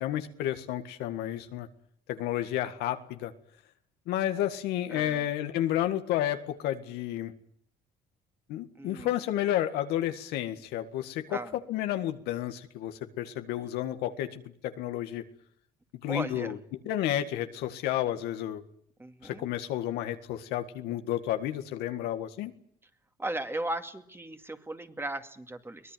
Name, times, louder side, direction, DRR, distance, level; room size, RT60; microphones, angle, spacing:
voice 1, 0.0-1.7 2.1-3.3 4.1-7.3 8.5-11.4 11.7-15.2 16.0-16.6 16.9-18.6 19.2-22.5, left 12 dB, 85° left, 8 dB, 1.8 m, -31 dB
voice 2, 4.9-5.3 8.8-9.2 11.3-11.6 16.1-16.5 19.0-19.4 23.2-25.9, right 1 dB, 15° right, 7 dB, 2.3 m, -37 dB
23.0 x 18.5 x 9.3 m, 0.65 s
cardioid pair, 85°, 16 cm